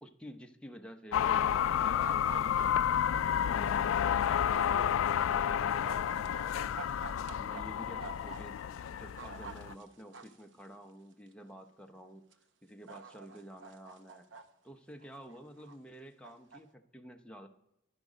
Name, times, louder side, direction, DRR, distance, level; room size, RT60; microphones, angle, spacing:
voice 1, 0.0-2.7 3.1-4.4 4.8-6.8 7.3-8.6 8.9-14.3 14.6-17.5, equal, 5° left, 3 dB, 0.7 m, -50 dB
sound 1, 1.1-9.7, left 9 dB, 80° left, 0.3 m, -30 dB
sound 2, 2.0-3.1 3.7-3.8 4.5-4.9 5.8-7.6 8.0-8.4 8.9-10.4 11.3-11.4 12.3-12.4 12.9-14.4 15.0-15.8 16.2-16.6, right 4 dB, 65° right, 0.8 m, -47 dB
11.0 x 10.5 x 5.0 m, 0.87 s
head